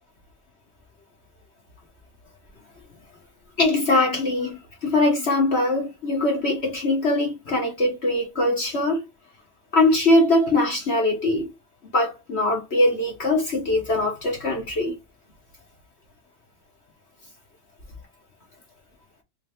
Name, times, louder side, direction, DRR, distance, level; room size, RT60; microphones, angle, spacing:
voice 1, 3.6-9.0 9.7-11.5 11.9-14.9, left 2 dB, 40° left, 1.1 m, -22 dB
3.3 x 3.3 x 3.2 m
omnidirectional pair, 2.2 m